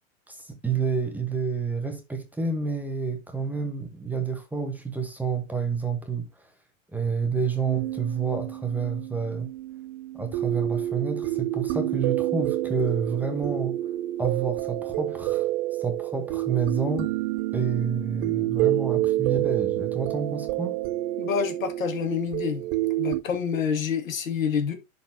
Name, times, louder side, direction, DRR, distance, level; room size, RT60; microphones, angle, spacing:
voice 1, 0.3-6.5 6.9-9.5 10.1-13.8 14.2-15.5 15.8-17.1 17.5-20.8, right 5 dB, 5° right, 1.1 m, -29 dB
sound 1, 7.7-23.2, right 15 dB, 40° right, 0.5 m, -28 dB
voice 2, 21.2-22.6 23.0-24.7, left 7 dB, 80° left, 1.9 m, -27 dB
11.5 x 4.1 x 2.8 m
hypercardioid pair, 120°, 39 cm